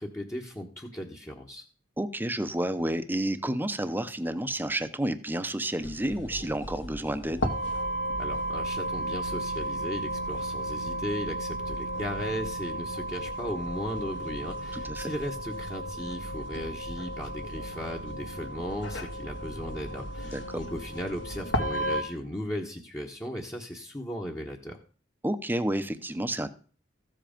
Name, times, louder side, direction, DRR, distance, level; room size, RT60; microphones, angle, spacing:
voice 1, 0.0-1.6 8.2-24.8, equal, 15° left, -2 dB, 1.2 m, -36 dB
voice 2, 2.0-7.4 14.8-15.1 20.3-20.6 25.2-26.5, right 1 dB, 10° right, 11 dB, 0.8 m, -30 dB
sound 1, 5.8-22.0, right 1 dB, 90° left, 2.1 m, -34 dB
14.5 x 7.7 x 5.1 m, 0.40 s
head